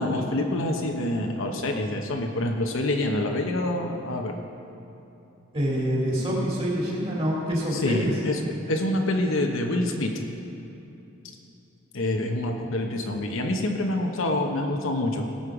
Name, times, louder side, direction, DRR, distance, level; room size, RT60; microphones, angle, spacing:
voice 1, 0.0-4.4 7.7-8.4 8.7-10.1 11.9-15.2, left 1 dB, 70° left, 2 dB, 1.0 m, -26 dB
voice 2, 5.5-8.2, equal, 30° right, -4 dB, 2.7 m, -26 dB
17.5 x 6.4 x 4.9 m, 2.9 s
head